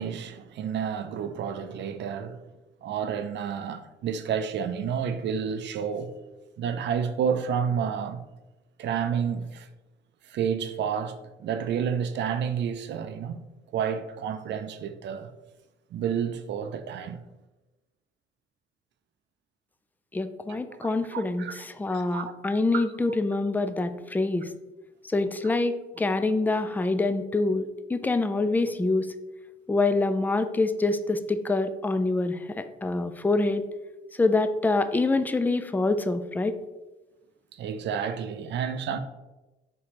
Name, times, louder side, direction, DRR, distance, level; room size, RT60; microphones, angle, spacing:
voice 1, 0.0-2.4 2.8-6.1 6.6-8.2 8.8-9.7 10.2-13.4 13.7-15.3 15.9-17.2 20.8-22.3 22.7-23.2 37.5-39.0, right 7 dB, 65° right, 0.4 m, -30 dB
voice 2, 20.1-21.4 21.8-24.5 25.1-27.6 27.9-29.1 29.7-33.6 34.2-36.6, left 3 dB, 10° left, 0.3 m, -25 dB
4.2 x 3.7 x 3.0 m
cardioid pair, 90°, 20 cm